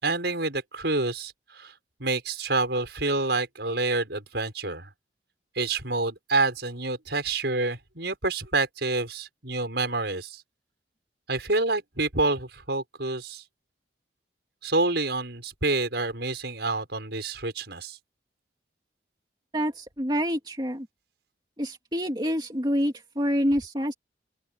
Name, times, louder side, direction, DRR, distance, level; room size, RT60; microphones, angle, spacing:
voice 1, 0.0-1.7 2.0-4.9 5.6-10.4 11.3-13.4 14.6-18.0, right 3 dB, 65° right, 5.9 m, -28 dB
voice 2, 19.5-20.9 21.6-23.9, equal, 25° right, 2.7 m, -27 dB
open air
head